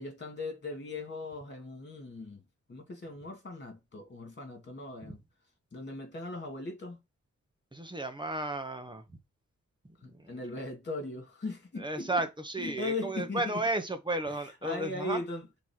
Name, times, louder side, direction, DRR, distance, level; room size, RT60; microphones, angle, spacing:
voice 1, 0.0-2.4 2.7-5.2 5.7-7.0 10.0-12.2 12.6-13.6 14.3-15.5, left 2 dB, 35° left, 2.7 m, -39 dB
voice 2, 7.7-9.0 10.1-10.3 11.8-15.2, right 2 dB, 15° right, 1.2 m, -33 dB
5.0 x 4.2 x 4.7 m
wide cardioid pair, 120°, 29 cm